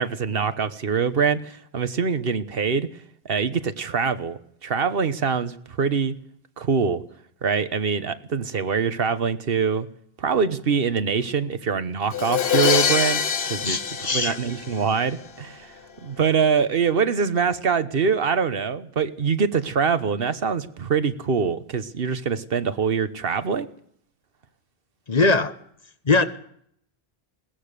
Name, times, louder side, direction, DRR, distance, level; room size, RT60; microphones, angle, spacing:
voice 1, 0.0-2.9 3.2-6.2 6.6-7.0 7.4-9.9 10.2-13.2 13.5-13.8 14.1-15.7 16.0-23.7, right 6 dB, 65° right, 12 dB, 1.3 m, -24 dB
Crash cymbal, 12.1-15.1, left 7 dB, 75° left, 1.3 m, -24 dB
voice 2, 13.6-14.4 25.1-25.5 26.0-26.2, left 3 dB, 40° left, 10 dB, 1.3 m, -21 dB
21.5 x 18.5 x 6.8 m, 0.68 s
omnidirectional pair, 1.1 m